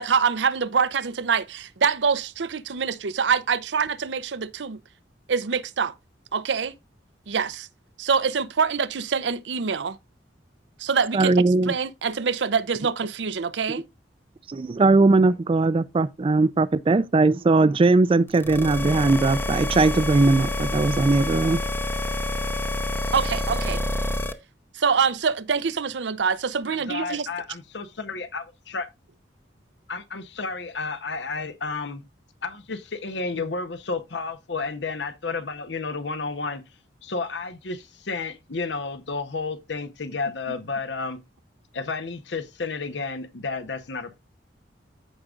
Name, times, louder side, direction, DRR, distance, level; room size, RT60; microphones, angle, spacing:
voice 1, 0.0-4.8 5.3-5.9 6.3-6.8 7.3-7.7 8.0-10.0 10.8-13.8 23.1-23.8 24.7-27.3, right 6 dB, 75° right, 0.6 m, -25 dB
voice 2, 11.1-11.7 14.5-21.6, right 3 dB, 30° right, 0.4 m, -19 dB
sound 1, 18.3-24.3, left 1 dB, 15° left, 0.7 m, -27 dB
voice 3, 26.7-28.9 29.9-32.0 32.4-36.6 37.0-41.2 41.7-44.2, left 4 dB, 70° left, 0.9 m, -31 dB
14.5 x 5.1 x 2.4 m
head